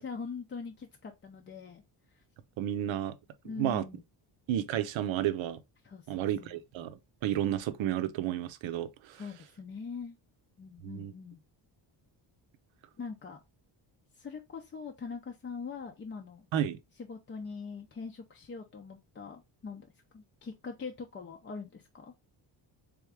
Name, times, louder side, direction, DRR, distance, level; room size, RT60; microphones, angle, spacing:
voice 1, 0.0-1.8 2.1-2.2 3.4-4.0 5.8-6.6 9.1-10.2 10.6-11.4 13.0-13.4 14.1-16.5 17.1-22.1, left 5 dB, 25° left, 0.5 m, -42 dB
voice 2, 2.6-3.2 3.6-3.8 4.5-5.6 6.1-9.2 10.8-11.1 16.5-16.8, right 11 dB, 85° right, 0.7 m, -32 dB
3.6 x 3.5 x 3.3 m
cardioid pair, 145°, 45 cm